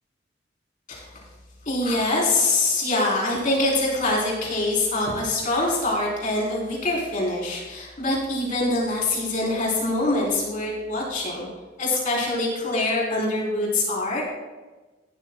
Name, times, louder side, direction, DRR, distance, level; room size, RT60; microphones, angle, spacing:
voice 1, 1.7-11.5 11.8-14.3, left 2 dB, 45° left, -4 dB, 3.7 m, -24 dB
15.0 x 12.5 x 2.3 m, 1.2 s
head